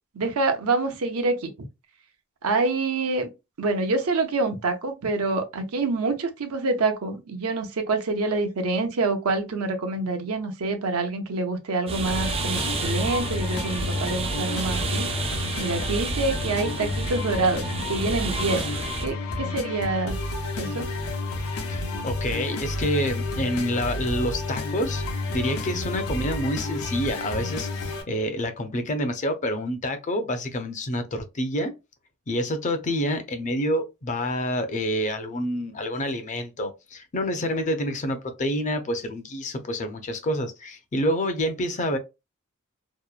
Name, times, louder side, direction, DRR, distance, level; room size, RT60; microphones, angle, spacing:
voice 1, 0.1-1.5 2.4-3.3 3.6-15.1 15.6-18.7 19.0-20.2 20.6-20.9, right 3 dB, 85° right, 0.7 m, -26 dB
sound 1, 11.9-19.1, right 4 dB, 25° right, 0.3 m, -31 dB
sound 2, 12.0-28.0, left 2 dB, 75° left, 0.7 m, -30 dB
voice 2, 21.7-25.0 25.3-31.7 32.3-42.0, equal, 35° left, 0.5 m, -28 dB
2.8 x 2.1 x 2.3 m
head